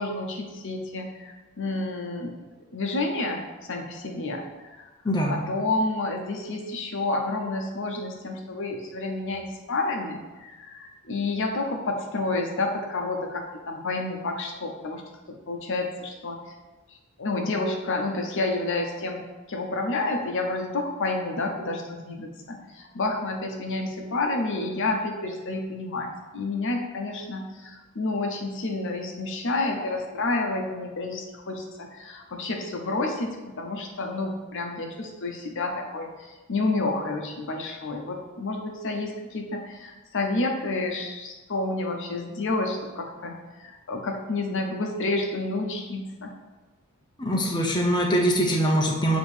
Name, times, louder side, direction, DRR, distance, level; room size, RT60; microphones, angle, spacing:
voice 1, 0.0-2.3 2.7-4.9 5.3-15.0 15.3-16.4 17.2-19.2 19.5-46.3, left 2 dB, 60° left, 2 dB, 0.8 m, -30 dB
voice 2, 5.0-5.5 47.2-49.2, equal, 20° left, -1 dB, 0.7 m, -23 dB
7.1 x 3.1 x 4.9 m, 1.2 s
head